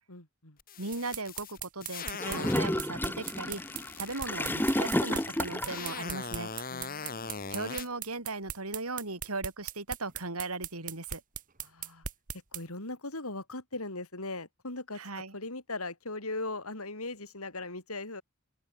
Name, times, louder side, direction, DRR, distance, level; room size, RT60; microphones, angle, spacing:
voice 1, 0.1-0.6 6.7-7.5 11.6-12.0 12.5-18.2, left 2 dB, 80° left, 6.3 m, -39 dB
sound 1, 0.6-2.8 3.2-7.9, left 5 dB, 40° left, 4.6 m, -41 dB
voice 2, 0.8-3.6 4.0-6.7 7.5-11.2 15.0-15.3, right 3 dB, 85° right, 4.6 m, -37 dB
sound 2, 0.9-12.6, right 9 dB, 35° right, 1.6 m, -39 dB
Gurgling / Toilet flush, 2.2-5.9, left 1 dB, 10° left, 2.1 m, -31 dB
open air
head